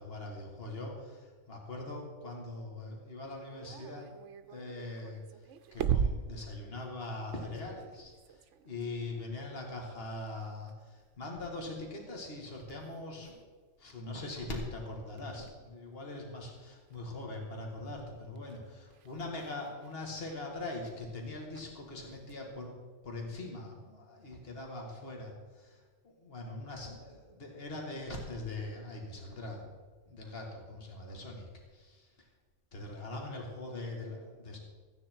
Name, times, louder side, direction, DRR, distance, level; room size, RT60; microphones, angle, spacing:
voice 1, 0.0-4.1 4.5-5.2 5.7-8.1 8.6-13.4 13.8-22.7 23.0-25.8 26.0-29.7 30.1-32.1 32.7-34.6, left 2 dB, 50° left, 1 dB, 2.2 m, -42 dB
sound 1, 3.2-14.3 14.8-17.5 17.8-22.5, right 7 dB, 70° right, 1.0 m, -41 dB
14.5 x 9.5 x 4.5 m, 1.4 s
omnidirectional pair, 1.3 m